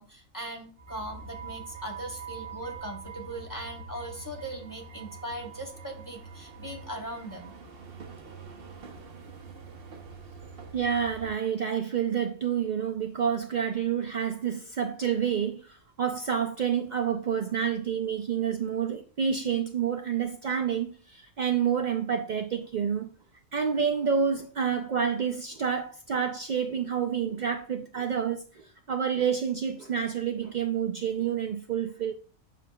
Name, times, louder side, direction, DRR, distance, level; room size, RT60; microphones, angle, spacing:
voice 1, 0.0-7.5, right 1 dB, 15° left, 0.8 m, -39 dB
sound 1, 0.8-11.3, right 5 dB, 50° right, 1.0 m, -44 dB
voice 2, 10.7-23.1 23.5-32.1, right 7 dB, 85° right, 0.4 m, -28 dB
7.5 x 6.1 x 2.3 m
omnidirectional pair, 1.5 m